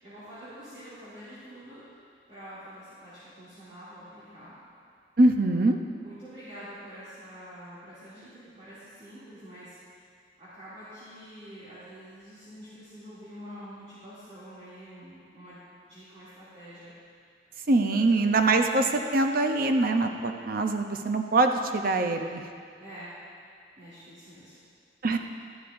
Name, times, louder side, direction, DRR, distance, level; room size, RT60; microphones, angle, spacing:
voice 1, 0.0-2.0 2.3-4.6 5.4-5.5 6.0-10.0 10.4-15.6 15.9-16.9 17.9-18.0 22.8-23.1 23.8-24.6, equal, 35° right, -14 dB, 2.6 m, -46 dB
voice 2, 5.2-5.8 17.7-22.4 25.0-25.2, right 2 dB, 55° right, 5 dB, 0.6 m, -23 dB
12.5 x 12.0 x 2.6 m, 2.2 s
head